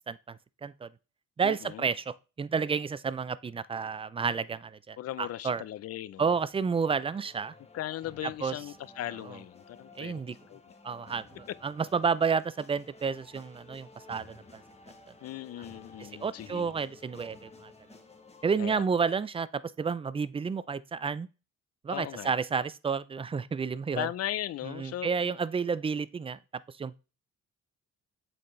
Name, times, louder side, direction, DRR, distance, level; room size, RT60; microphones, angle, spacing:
voice 1, 0.1-0.9 1.4-5.6 6.2-7.5 8.4-8.5 10.0-10.4 10.8-14.6 16.0-17.7 18.4-21.3 21.8-24.1 24.6-26.4 26.8-27.0, right 5 dB, 20° right, 0.3 m, -31 dB
voice 2, 1.4-1.9 5.0-6.3 7.7-10.8 15.2-16.7 18.6-18.8 21.9-22.3 24.0-25.3, left 13 dB, 55° left, 0.5 m, -38 dB
sound 1, 6.6-18.6, left 3 dB, 20° left, 1.1 m, -54 dB
7.7 x 4.3 x 3.1 m
cardioid pair, 90°, 30 cm